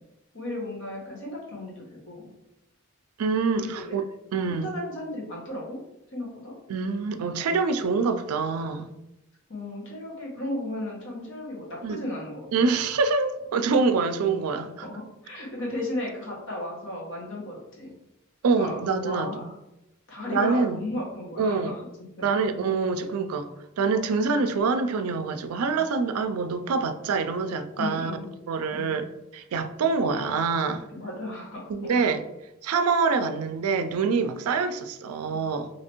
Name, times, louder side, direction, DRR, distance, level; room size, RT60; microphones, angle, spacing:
voice 1, 0.3-2.3 3.5-3.8 4.5-5.8 6.1-6.5 9.5-12.7 14.8-17.9 18.5-19.5 20.1-21.8 22.2-22.3 27.8-28.3 28.7-28.9 30.9-32.0 35.3-35.4, left 1 dB, 60° left, 1.2 m, -35 dB
voice 2, 3.2-4.0 4.3-4.7 6.7-8.9 11.8-12.0 12.5-14.8 18.4-19.5 20.3-20.8 21.4-21.7 22.2-23.5 23.8-28.1 28.5-30.9 31.7-32.2 32.6-35.7, right 4 dB, 90° right, 0.4 m, -25 dB
3.2 x 2.8 x 2.9 m
head